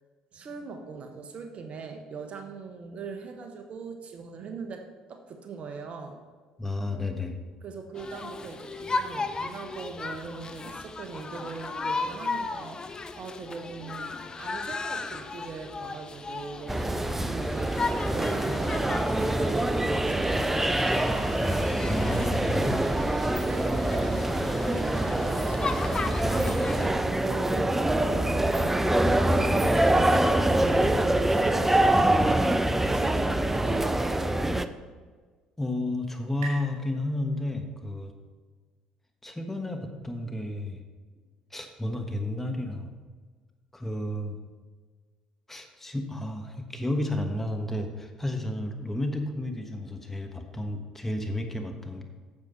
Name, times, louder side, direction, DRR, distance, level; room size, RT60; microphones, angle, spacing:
voice 1, 0.3-4.8 5.1-6.2 7.6-21.4 23.4-30.2 30.7-34.5, right 4 dB, 50° right, 5 dB, 1.2 m, -41 dB
voice 2, 6.6-7.4 21.9-22.8 35.6-38.1 39.2-40.8 41.5-42.9 43.7-44.4 45.5-52.0, left 1 dB, 10° left, 4 dB, 1.3 m, -32 dB
sound 1, 8.0-26.9, left 3 dB, 30° left, 0.8 m, -36 dB
sound 2, 16.7-34.7, right 1 dB, 10° right, 0.6 m, -25 dB
sound 3, 35.0-38.3, right 3 dB, 75° right, 2.5 m, -47 dB
9.6 x 7.3 x 4.3 m, 1.5 s
hypercardioid pair, 55°, 3 cm